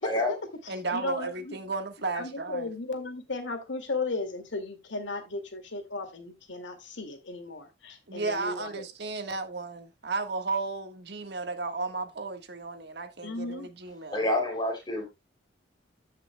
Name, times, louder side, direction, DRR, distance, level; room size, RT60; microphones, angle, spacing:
voice 1, 0.0-0.4 0.6-1.6 2.1-8.8 13.2-13.7, left 3 dB, 85° left, 2.2 m, -35 dB
voice 2, 0.7-2.7 8.1-14.2, right 3 dB, 60° right, 1.4 m, -34 dB
voice 3, 14.1-15.0, left 1 dB, 25° left, 3.1 m, -27 dB
15.5 x 5.8 x 2.2 m
head